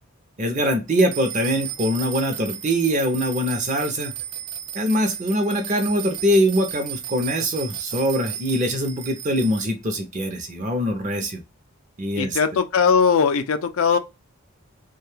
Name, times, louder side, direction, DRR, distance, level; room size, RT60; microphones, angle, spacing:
voice 1, 0.4-4.1 4.7-11.4 12.0-12.4, equal, 35° right, 0.6 m, -23 dB
sound 1, 0.9-9.7, right 11 dB, 90° right, 0.4 m, -35 dB
voice 2, 12.2-14.0, left 6 dB, 65° left, 0.4 m, -19 dB
2.6 x 2.3 x 3.2 m
head